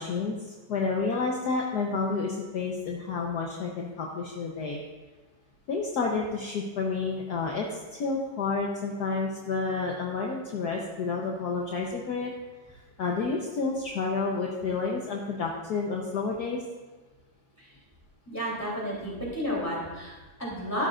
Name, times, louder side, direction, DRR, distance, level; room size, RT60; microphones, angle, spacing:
voice 1, 0.0-4.8 5.7-12.3 12.7-16.6, left 4 dB, 60° left, -1 dB, 1.4 m, -30 dB
voice 2, 18.3-20.9, equal, 10° left, -5 dB, 3.1 m, -32 dB
14.0 x 12.0 x 2.5 m, 1.2 s
omnidirectional pair, 2.1 m